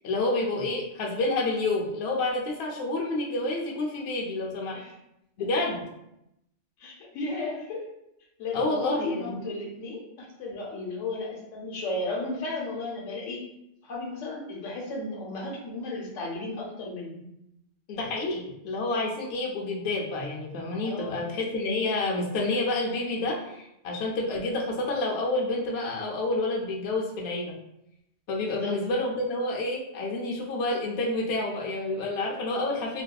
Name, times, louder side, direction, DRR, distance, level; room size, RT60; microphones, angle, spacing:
voice 1, 0.0-4.8 5.4-5.8 8.5-9.4 17.9-27.5 28.3-33.0, left 2 dB, 65° left, -2 dB, 0.7 m, -29 dB
voice 2, 6.8-7.9 8.4-13.4 13.8-17.3 20.8-21.2 28.5-28.8, left 2 dB, 90° left, -3 dB, 1.1 m, -34 dB
2.6 x 2.2 x 2.2 m, 0.83 s
omnidirectional pair, 1.2 m